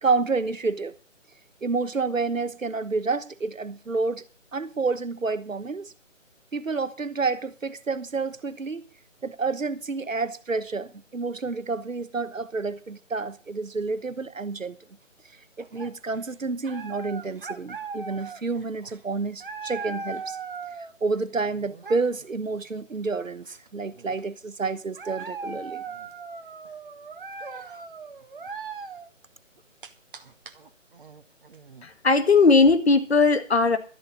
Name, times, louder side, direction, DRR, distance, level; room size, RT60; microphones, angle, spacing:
voice 1, 0.0-1.0 1.6-4.2 4.5-5.9 6.5-8.8 9.2-14.8 15.6-20.4 21.0-25.8, right 4 dB, 80° right, 1.2 m, -29 dB
sound 1, 15.6-16.2 16.6-20.9 21.3-22.2 23.1-23.2 23.4-24.2 24.6-29.1 29.6-31.8, right 4 dB, 45° right, 1.2 m, -39 dB
voice 2, 31.8-33.8, left 4 dB, 55° left, 1.9 m, -18 dB
13.0 x 6.7 x 8.8 m
figure-of-eight pair, 150°, 39 cm